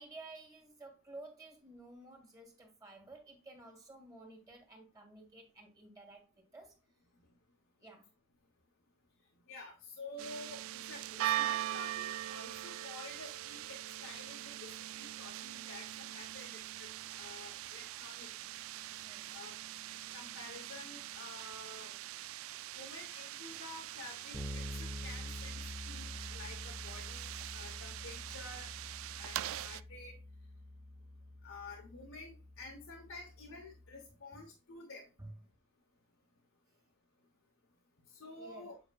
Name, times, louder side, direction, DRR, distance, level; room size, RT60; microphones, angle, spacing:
voice 1, 0.0-6.7 7.8-8.1 19.0-19.4 34.3-34.5 35.2-35.3 38.4-38.7, right 2 dB, 15° right, 1.8 m, -53 dB
voice 2, 9.5-16.9 17.2-18.3 19.3-19.6 20.1-21.9 22.7-28.7 29.1-30.2 31.4-35.1 38.1-38.8, left 3 dB, 70° left, 1.0 m, -50 dB
sound 1, 10.2-29.8, right 13 dB, 80° right, 0.3 m, -42 dB
Bass guitar, 24.3-34.0, left 1 dB, ahead, 0.8 m, -47 dB
7.9 x 5.1 x 2.3 m
head